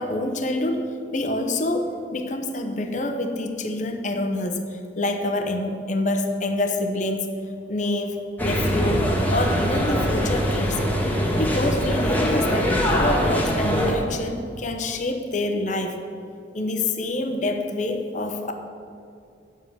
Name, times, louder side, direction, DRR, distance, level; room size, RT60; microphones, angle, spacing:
voice 1, 0.0-7.3 7.7-10.8 11.4-16.0 16.5-18.5, left 2 dB, 45° left, 5 dB, 0.9 m, -26 dB
sound 1, 8.4-13.9, equal, 10° left, 1.3 m, -22 dB
9.5 x 7.3 x 7.2 m, 2.5 s
head